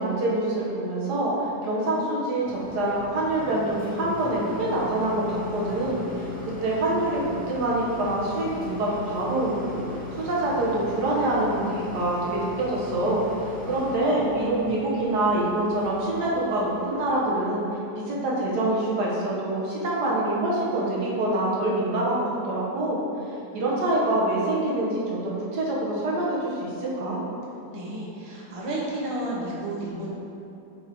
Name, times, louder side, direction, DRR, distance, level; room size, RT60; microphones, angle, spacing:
voice 1, 0.0-6.2 6.6-9.8 10.2-17.6 18.0-23.0 23.5-27.2, right 1 dB, 80° right, -5 dB, 1.7 m, -25 dB
sound 1, 2.4-17.1, left 3 dB, 10° left, 0.6 m, -39 dB
voice 2, 27.7-30.1, right 1 dB, 25° right, -5 dB, 0.9 m, -32 dB
7.0 x 4.6 x 3.5 m, 2.9 s
omnidirectional pair, 1.7 m